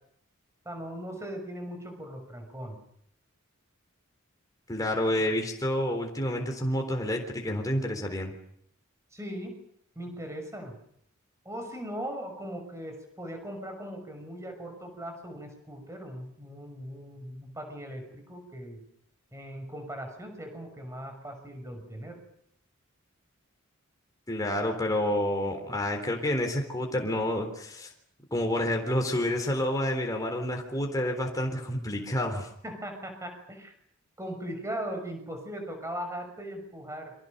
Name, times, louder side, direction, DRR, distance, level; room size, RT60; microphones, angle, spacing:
voice 1, 0.6-2.8 9.1-9.6 9.9-10.8 11.4-18.8 19.3-22.2 32.6-33.7 34.2-37.1, equal, 15° right, 5 dB, 6.3 m, -39 dB
voice 2, 4.7-8.3 24.3-27.9 28.3-32.5, left 1 dB, 15° left, 2 dB, 3.8 m, -29 dB
29.5 x 25.0 x 6.7 m, 0.70 s
head